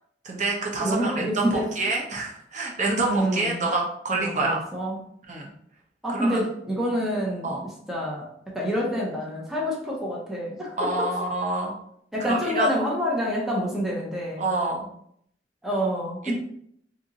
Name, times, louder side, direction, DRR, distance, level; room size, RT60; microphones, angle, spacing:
voice 1, 0.2-4.6 5.3-5.5 6.1-6.4 7.4-7.6 10.8-11.7 12.3-12.7 14.4-14.9, right 2 dB, 45° right, -1 dB, 0.7 m, -27 dB
voice 2, 0.8-1.7 3.0-3.7 4.1-5.0 6.0-11.1 12.1-14.5 15.6-16.3, equal, ahead, -4 dB, 0.6 m, -27 dB
2.7 x 2.6 x 3.8 m, 0.68 s
head